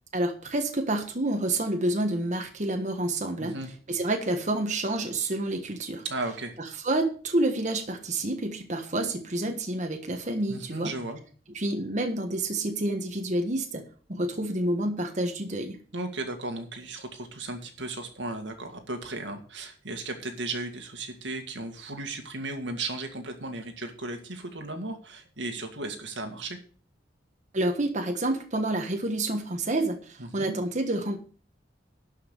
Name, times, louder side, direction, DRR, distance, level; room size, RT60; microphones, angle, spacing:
voice 1, 0.1-3.6 3.9-6.0 6.6-10.9 11.5-13.8 14.1-15.8 27.5-31.2, right 1 dB, 40° right, 5 dB, 1.3 m, -28 dB
voice 2, 3.4-3.7 6.0-6.5 10.5-11.2 15.9-26.6 30.2-30.5, right 2 dB, 90° right, 5 dB, 2.1 m, -35 dB
11.5 x 5.7 x 6.7 m, 0.41 s
head